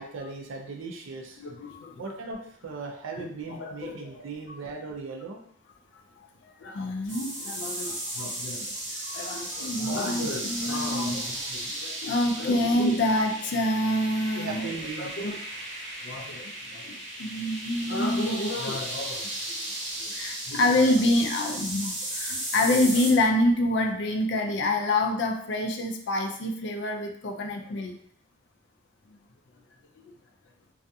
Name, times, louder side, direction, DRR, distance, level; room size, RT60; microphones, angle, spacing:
voice 1, 0.0-1.5 2.0-5.4 14.3-15.2, right 4 dB, 70° right, 1 dB, 0.4 m, -38 dB
voice 2, 1.4-1.9 3.2-4.1 6.4-15.4 16.0-19.6 20.0-27.9 30.0-30.1, left 1 dB, 55° left, 3 dB, 0.3 m, -27 dB
sound 1, 7.1-23.1, right 1 dB, 40° right, 1.2 m, -35 dB
2.4 x 2.3 x 2.6 m, 0.63 s
head